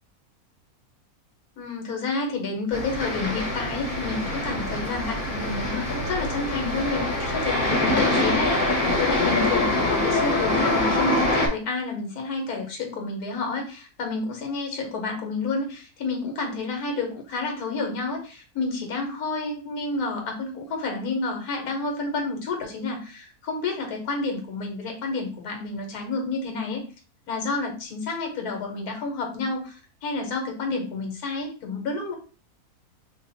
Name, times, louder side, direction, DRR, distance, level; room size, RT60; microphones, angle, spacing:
voice 1, 1.6-26.8 27.3-32.2, left 3 dB, 80° left, 2 dB, 1.5 m, -30 dB
sound 1, 2.7-11.5, left 2 dB, 40° left, 1.1 m, -24 dB
2.9 x 2.4 x 4.0 m, 0.37 s
omnidirectional pair, 1.6 m